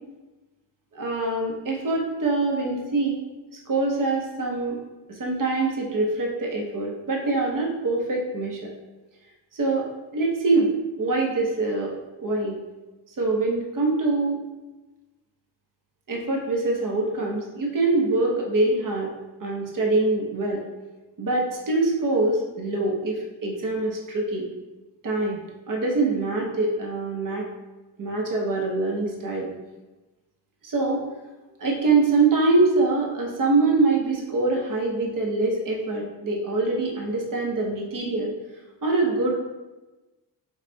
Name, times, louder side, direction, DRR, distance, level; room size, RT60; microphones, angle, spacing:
voice 1, 0.9-3.2 3.7-4.7 5.1-8.7 9.5-9.9 10.1-10.7 11.0-11.9 12.2-12.5 13.2-14.4 16.1-19.1 19.4-20.6 21.2-24.5 25.0-27.5 28.0-29.5 30.6-31.0 31.6-38.3 38.8-39.3, right 3 dB, 50° right, -1 dB, 1.0 m, -24 dB
5.5 x 2.4 x 3.9 m, 1.1 s
wide cardioid pair, 155°, 42 cm